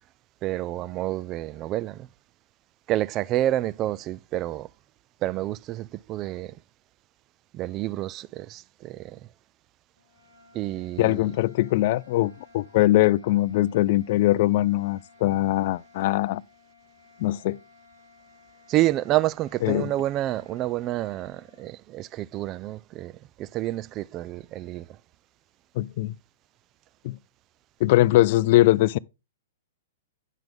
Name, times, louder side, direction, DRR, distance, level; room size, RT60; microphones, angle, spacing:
voice 1, 0.4-2.1 2.9-4.7 5.2-6.6 7.5-9.3 10.5-11.4 18.7-25.0, right 15 dB, 30° right, 0.3 m, -29 dB
sound 1, 9.9-21.8, left 3 dB, 85° right, 5.0 m, -56 dB
voice 2, 11.0-16.4 17.2-17.6 19.6-19.9 25.8-26.1 27.0-27.2 27.8-29.0, left 16 dB, 50° left, 0.4 m, -21 dB
9.1 x 5.9 x 3.5 m
hypercardioid pair, 115°, 0 cm